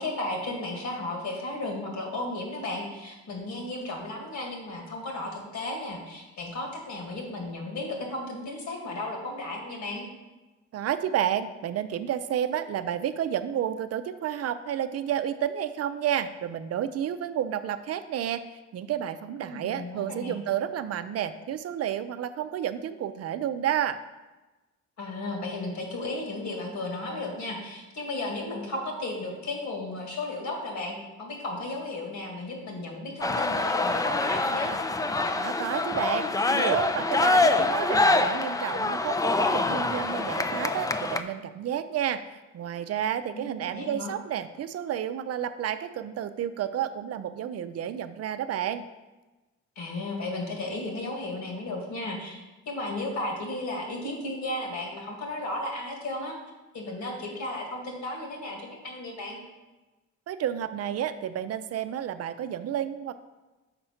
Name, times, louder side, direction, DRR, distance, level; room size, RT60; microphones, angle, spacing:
voice 1, 0.0-10.1 19.4-20.4 25.0-34.7 43.3-44.2 49.8-56.4 56.7-59.4, left 2 dB, 70° left, 1 dB, 2.0 m, -34 dB
voice 2, 10.7-24.0 35.4-42.2 42.5-48.8 60.3-63.1, right 10 dB, 55° right, 11 dB, 0.5 m, -31 dB
sound 1, 33.2-41.2, left 3 dB, 10° left, 0.4 m, -25 dB
5.9 x 4.2 x 5.7 m, 1.1 s
cardioid pair, 90°, 30 cm